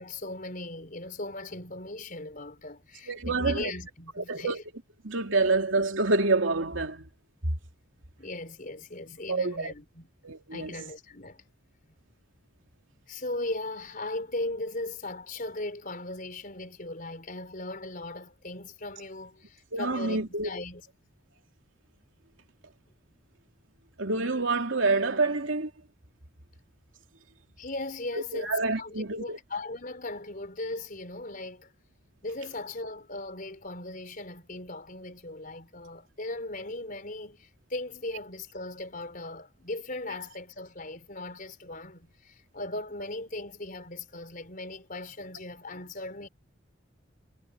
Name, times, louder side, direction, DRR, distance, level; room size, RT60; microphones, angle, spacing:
voice 1, 0.0-4.6 8.2-10.1 10.5-11.4 13.1-20.8 27.6-31.7 32.2-46.3, left 2 dB, 45° left, 4.7 m, -38 dB
voice 2, 3.1-3.7 4.2-4.6 5.0-7.1 9.3-9.7 10.2-10.8 19.7-20.5 24.0-25.7 28.1-29.4, right 3 dB, 75° right, 2.9 m, -27 dB
head